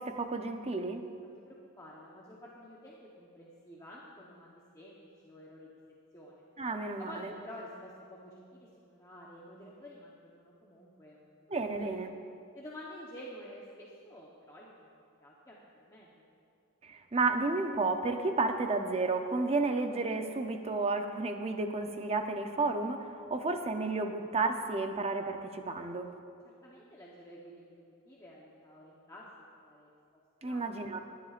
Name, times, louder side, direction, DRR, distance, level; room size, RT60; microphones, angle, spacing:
voice 1, 0.0-1.0 6.6-7.3 11.5-12.1 16.8-26.1 30.4-31.0, right 3 dB, 30° right, 6 dB, 0.6 m, -32 dB
voice 2, 1.2-5.7 6.1-6.4 7.0-11.9 12.5-16.1 26.4-29.3 29.6-29.9 30.4-30.6, equal, 15° left, -5 dB, 0.9 m, -50 dB
20.5 x 10.5 x 2.5 m, 2.5 s
head